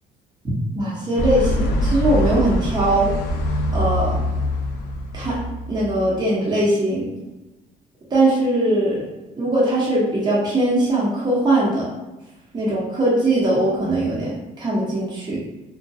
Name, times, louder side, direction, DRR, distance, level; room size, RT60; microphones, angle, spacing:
voice 1, 0.7-3.1 3.7-4.2 5.1-5.4 5.7-7.1 8.1-9.1 9.4-11.9 12.5-14.3 14.6-15.4, right 1 dB, 25° right, -6 dB, 0.8 m, -20 dB
sound 1, 1.2-6.2, equal, 85° left, 0.4 m, -24 dB
2.6 x 2.2 x 2.3 m, 1.1 s
cardioid pair, 110°, 17 cm